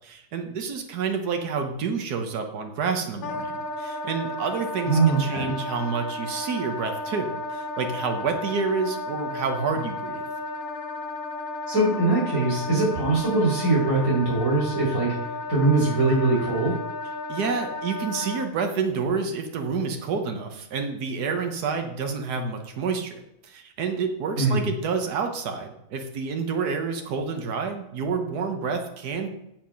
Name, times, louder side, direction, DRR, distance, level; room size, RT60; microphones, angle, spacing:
voice 1, 0.0-10.2 17.3-29.3, right 5 dB, 85° right, 5 dB, 1.6 m, -29 dB
Wind instrument woodwind instrument, 3.2-18.5, left 2 dB, 50° left, 0.6 m, -33 dB
voice 2, 4.8-5.5 11.7-15.2 15.5-16.7 24.4-24.6, right 3 dB, 55° right, -7 dB, 3.8 m, -22 dB
7.5 x 7.4 x 5.8 m, 0.82 s
omnidirectional pair, 1.7 m